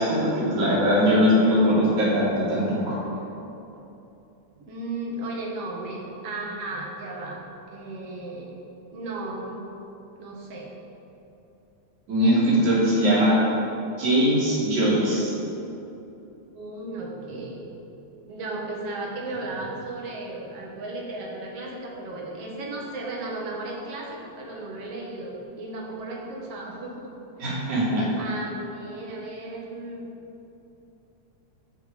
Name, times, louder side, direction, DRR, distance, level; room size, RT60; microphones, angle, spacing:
voice 1, 0.0-3.0 12.1-13.4 14.0-15.3 27.4-28.1, equal, 75° right, -7 dB, 4.5 m, -21 dB
voice 2, 2.7-3.2 4.6-7.4 7.7-8.5 8.9-9.6 10.2-10.7 13.0-13.3 16.5-17.7 18.3-27.7 28.2-30.1, right 2 dB, 55° right, -2 dB, 2.5 m, -35 dB
16.0 x 6.4 x 5.0 m, 2.9 s
omnidirectional pair, 3.4 m